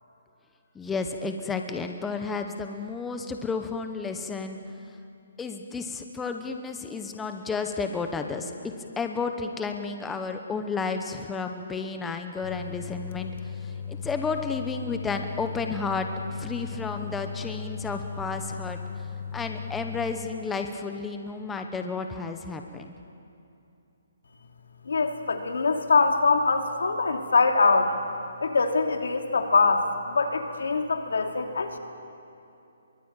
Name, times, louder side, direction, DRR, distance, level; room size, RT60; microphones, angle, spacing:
voice 1, 0.7-4.6 5.4-13.3 13.6-18.8 19.3-22.9, left 4 dB, 5° left, 5 dB, 1.0 m, -32 dB
sound 1, 12.4-20.1, left 6 dB, 45° left, 1.8 m, -37 dB
voice 2, 24.9-27.9 28.4-31.8, left 4 dB, 90° left, 4 dB, 2.9 m, -23 dB
24.0 x 23.0 x 9.0 m, 2.7 s
hypercardioid pair, 165°, 0 cm